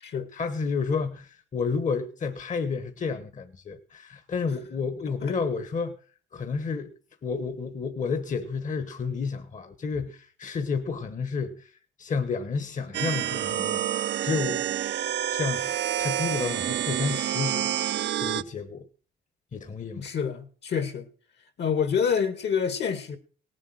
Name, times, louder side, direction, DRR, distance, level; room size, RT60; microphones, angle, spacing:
voice 1, 0.3-6.0 6.3-6.9 7.2-11.7 12.0-14.7 15.3-17.8 18.2-18.9 19.5-20.1, left 5 dB, 40° left, 1.3 m, -31 dB
sound 1, 12.9-18.4, right 11 dB, 60° right, 0.6 m, -28 dB
voice 2, 20.0-21.1 21.6-23.2, left 7 dB, 60° left, 1.9 m, -27 dB
18.0 x 7.6 x 6.3 m
cardioid pair, 90°, 20 cm